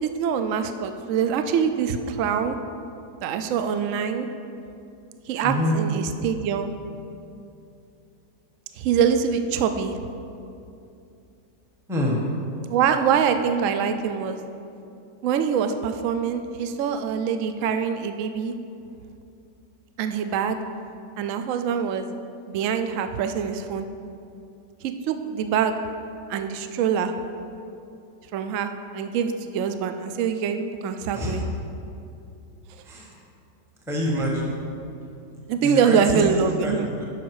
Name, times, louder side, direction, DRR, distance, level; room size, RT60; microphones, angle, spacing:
voice 1, 0.0-2.6 3.2-4.3 5.3-6.7 8.8-10.0 12.7-14.4 15.2-18.5 20.0-20.6 21.2-22.0 22.5-23.9 24.8-25.7 26.3-27.1 28.3-31.4 35.5-36.9, right 7 dB, 80° right, 8 dB, 0.7 m, -24 dB
voice 2, 5.4-5.8 11.9-12.2 31.1-31.4 32.8-33.1 33.9-34.6 35.6-36.2 36.6-37.0, left 1 dB, ahead, -2 dB, 0.8 m, -26 dB
11.5 x 5.5 x 4.7 m, 2.6 s
omnidirectional pair, 1.9 m